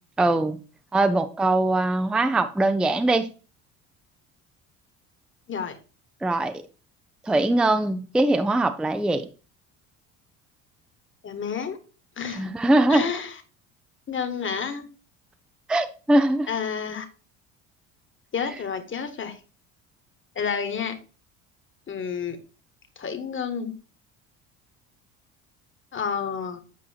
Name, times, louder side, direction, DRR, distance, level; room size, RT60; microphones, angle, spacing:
voice 1, 0.2-0.6 0.9-3.3 6.2-6.6 7.2-9.3 12.3-13.0 15.7-16.5, right 2 dB, ahead, 0.5 m, -21 dB
voice 2, 11.2-11.8 12.2-12.5 12.9-13.4 14.1-14.9 16.5-17.1 18.3-19.4 20.3-20.9 21.9-22.4 23.0-23.7 25.9-26.6, left 6 dB, 30° left, 1.4 m, -30 dB
8.6 x 4.8 x 2.9 m
hypercardioid pair, 70°, 38 cm